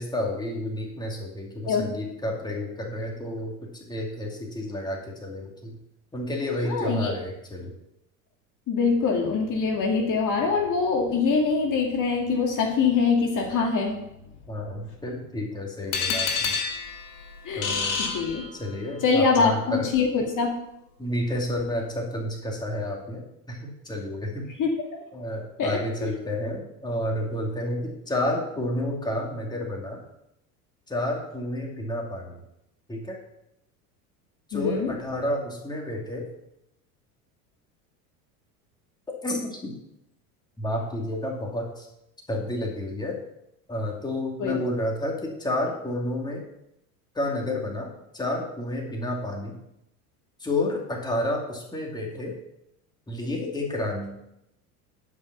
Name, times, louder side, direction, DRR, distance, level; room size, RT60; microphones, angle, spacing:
voice 1, 0.0-3.5 3.9-5.8 6.1-7.7 14.5-16.5 17.6-18.0 18.5-19.9 21.0-24.5 25.1-30.0 30.9-32.4 32.9-33.2 34.5-36.3 39.2-39.7 40.6-41.9 42.3-43.2 43.7-46.4 47.1-49.6 50.4-52.3 53.1-54.2, left 1 dB, 10° left, -1 dB, 2.5 m, -30 dB
voice 2, 6.6-7.1 8.7-14.0 17.5-18.4 19.0-20.5 24.6-24.7 25.6-25.7 34.5-34.9 44.4-44.6, left 5 dB, 45° left, 1 dB, 2.3 m, -24 dB
sound 1, 15.9-18.9, left 5 dB, 90° left, 2.0 m, -29 dB
12.0 x 5.5 x 6.0 m, 0.82 s
supercardioid pair, 100°, 45 cm